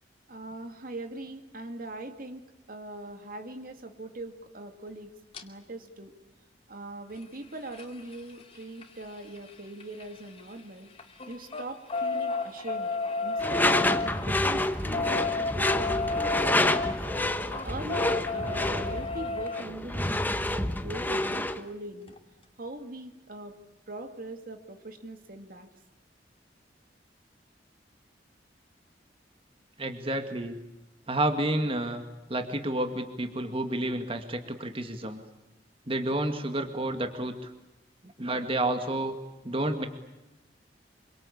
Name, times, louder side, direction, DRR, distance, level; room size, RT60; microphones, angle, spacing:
voice 1, 0.3-5.1 5.4-6.2 6.7-10.9 11.3-12.9 13.2-17.0 17.6-22.1 22.6-23.6 23.9-25.7, right 2 dB, 50° right, 6 dB, 2.3 m, -41 dB
sound 1, 5.3-5.4 7.1-10.6 10.9-19.6 21.3-21.4 21.7-21.8 22.1-22.2, left 3 dB, 35° left, 2.6 m, -33 dB
Door / Screech, 13.4-21.6, left 1 dB, 10° left, 1.2 m, -28 dB
voice 2, 29.8-30.6 31.1-32.0 32.3-35.2 35.9-37.5 38.2-39.1 39.4-39.9, right 1 dB, 30° right, 6 dB, 2.1 m, -30 dB
26.5 x 24.0 x 8.6 m, 0.98 s
head